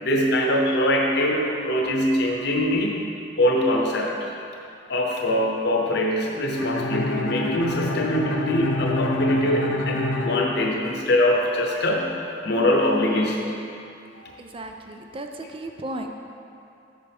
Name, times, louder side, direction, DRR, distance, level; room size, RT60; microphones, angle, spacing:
voice 1, 0.0-3.0 3.4-4.3 4.9-12.1 12.4-13.6 14.2-14.3, left 1 dB, 65° left, 0 dB, 0.9 m, -23 dB
Bowed string instrument, 6.6-11.4, left 2 dB, 80° left, 0.6 m, -27 dB
voice 2, 14.4-16.1, right 1 dB, 30° right, 4 dB, 0.4 m, -35 dB
7.4 x 6.7 x 3.6 m, 2.7 s
head